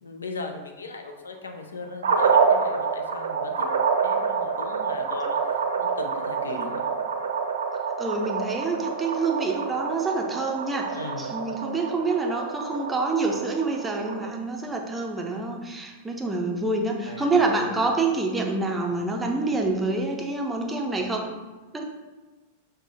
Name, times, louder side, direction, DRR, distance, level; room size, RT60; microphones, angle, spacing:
voice 1, 0.0-3.7 4.0-6.9 10.9-11.3 17.0-17.8, left 3 dB, 70° left, 5 dB, 0.4 m, -38 dB
sound 1, 2.0-14.3, right 6 dB, 65° right, 0.4 m, -27 dB
voice 2, 8.0-21.3 21.7-21.8, right 3 dB, 10° right, 1 dB, 0.5 m, -27 dB
5.9 x 2.2 x 3.3 m, 1.2 s
figure-of-eight pair, 90°, 0 cm